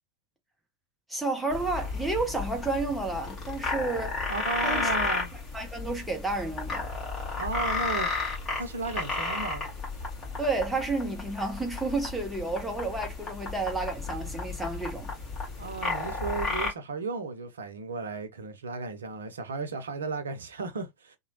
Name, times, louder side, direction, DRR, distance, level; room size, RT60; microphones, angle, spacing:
voice 1, 1.1-4.2 4.6-4.9 5.5-6.9 10.4-15.1, right 3 dB, 5° right, 0.8 m, -31 dB
sound 1, 1.5-16.7, left 3 dB, 25° left, 1.6 m, -33 dB
voice 2, 4.3-5.3 7.4-8.1 8.5-9.7 15.6-21.2, right 4 dB, 70° right, 0.7 m, -34 dB
2.9 x 2.2 x 2.9 m
figure-of-eight pair, 90°, 0 cm